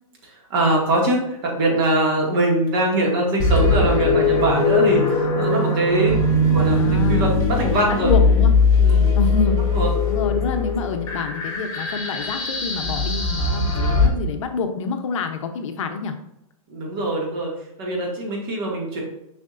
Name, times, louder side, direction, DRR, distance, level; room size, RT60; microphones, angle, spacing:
voice 1, 0.2-8.1 8.8-9.2 9.7-9.9 16.7-17.5 17.8-19.0, right 1 dB, 40° right, -1 dB, 2.2 m, -22 dB
sound 1, 3.4-14.1, left 3 dB, 20° left, 1.0 m, -20 dB
voice 2, 6.8-7.3 7.9-8.5 9.1-9.6 10.1-16.1, left 4 dB, 60° left, 6 dB, 0.9 m, -27 dB
7.1 x 5.7 x 2.6 m, 0.83 s
hypercardioid pair, 165°, 18 cm